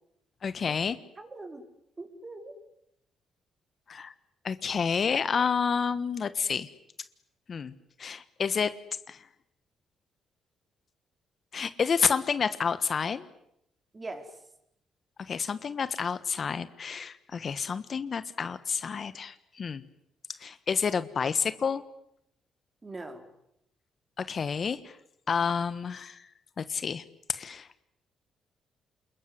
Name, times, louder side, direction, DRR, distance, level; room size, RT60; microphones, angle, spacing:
voice 1, 0.4-1.0 3.9-4.1 4.4-6.7 7.5-7.7 8.0-8.7 9.1-9.2 11.5-13.3 15.3-19.8 20.4-21.8 24.2-24.9 25.3-26.2 26.6-27.0 27.3-27.7, left 6 dB, 45° left, 13 dB, 1.4 m, -29 dB
voice 2, 1.2-1.7 2.0-2.5 13.9-14.3 22.8-23.3, right 2 dB, 25° right, 6 dB, 4.7 m, -41 dB
28.5 x 21.5 x 9.7 m, 0.78 s
cardioid pair, 90°, 0 cm